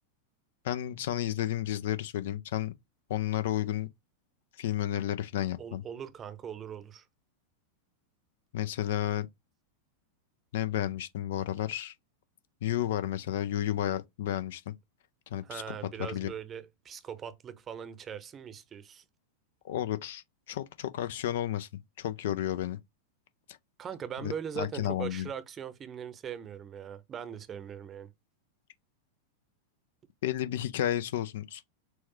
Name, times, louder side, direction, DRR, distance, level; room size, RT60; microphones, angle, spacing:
voice 1, 0.6-2.7 3.1-3.9 4.6-5.8 8.5-9.3 10.5-11.9 12.6-14.7 15.3-15.8 16.1-16.3 19.6-21.7 22.0-22.8 24.2-25.3 30.2-31.6, left 12 dB, 55° left, 0.5 m, -32 dB
voice 2, 5.6-7.0 15.4-19.0 23.8-28.1, right 8 dB, 25° right, 0.8 m, -40 dB
4.4 x 2.3 x 3.1 m
figure-of-eight pair, 90°, 0 cm